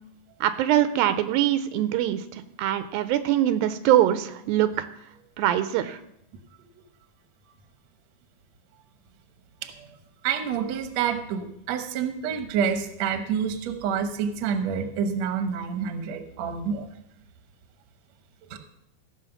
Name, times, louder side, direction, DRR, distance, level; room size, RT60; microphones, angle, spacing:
voice 1, 0.4-2.2 2.6-4.9 5.4-6.0, right 12 dB, 80° right, 11 dB, 2.4 m, -23 dB
voice 2, 10.2-16.9 18.5-18.6, right 7 dB, 65° right, 8 dB, 1.8 m, -28 dB
16.0 x 5.5 x 7.0 m, 0.77 s
omnidirectional pair, 4.2 m